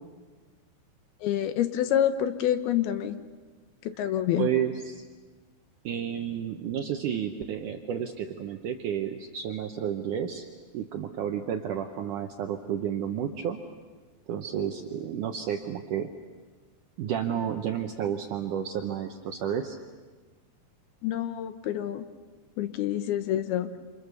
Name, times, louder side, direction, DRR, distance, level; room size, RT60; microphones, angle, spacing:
voice 1, 1.2-3.2 3.8-4.5 21.0-22.1 22.6-23.7, left 11 dB, 75° left, 10 dB, 2.7 m, -27 dB
voice 2, 4.4-5.0 5.8-10.4 10.7-13.6 14.3-16.1 17.0-19.8, right 9 dB, 75° right, 5 dB, 1.9 m, -31 dB
28.0 x 28.0 x 6.9 m, 1.4 s
omnidirectional pair, 4.8 m